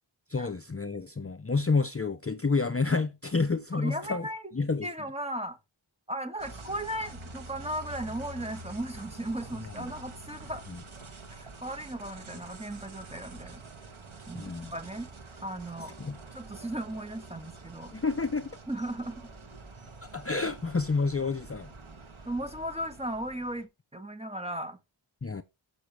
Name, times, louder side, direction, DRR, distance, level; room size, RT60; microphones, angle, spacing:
voice 1, 0.3-4.3 4.5-4.9 10.7-10.8 14.3-14.7 16.0-16.2 17.9-18.5 20.0-21.7 25.2-25.4, left 4 dB, 30° left, 0.7 m, -29 dB
voice 2, 3.7-4.5 4.8-5.6 6.1-10.6 11.3-13.6 14.3-15.1 15.4-15.9 16.3-17.9 18.7-19.3 22.2-24.8, right 1 dB, 10° right, 1.7 m, -36 dB
sound 1, 6.4-23.7, right 3 dB, 75° right, 1.6 m, -47 dB
14.0 x 6.1 x 3.3 m
wide cardioid pair, 60°, 49 cm